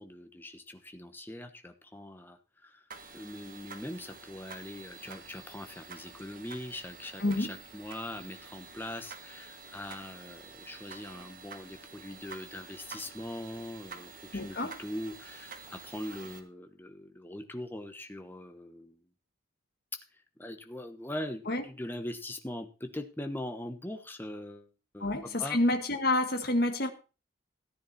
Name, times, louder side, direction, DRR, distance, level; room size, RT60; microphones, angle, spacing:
voice 1, 0.0-2.8 3.1-19.0 20.4-25.6, left 1 dB, 10° left, 1.1 m, -42 dB
sound 1, 2.9-16.4, right 4 dB, 45° right, 1.7 m, -49 dB
voice 2, 7.2-7.5 14.3-14.7 21.5-21.6 25.0-26.9, left 2 dB, 50° left, 1.7 m, -28 dB
14.0 x 9.7 x 4.2 m
head